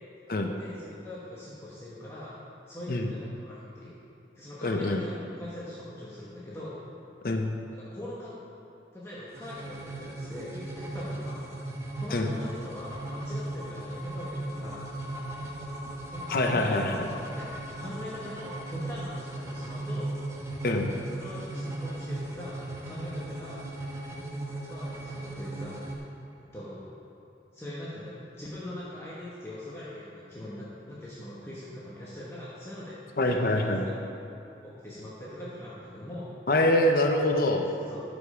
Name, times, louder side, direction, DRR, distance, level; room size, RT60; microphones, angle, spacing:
voice 1, 0.6-2.4 2.7-3.9 4.3-6.8 7.7-8.3 8.9-11.5 11.9-14.9 16.1-17.1 17.4-17.5 17.8-20.2 21.1-23.7 24.6-25.9 26.4-26.9 27.5-33.0 33.2-33.9 34.6-36.3 37.7-38.0, left 1 dB, 15° left, -9 dB, 1.2 m, -42 dB
voice 2, 4.6-5.0 7.2-7.5 12.1-12.3 16.3-17.1 20.6-20.9 33.2-33.8 36.5-37.7, left 1 dB, 55° left, 4 dB, 0.7 m, -25 dB
sound 1, 9.3-26.0, right 1 dB, 15° right, 0.9 m, -37 dB
12.5 x 5.2 x 5.0 m, 2.8 s
head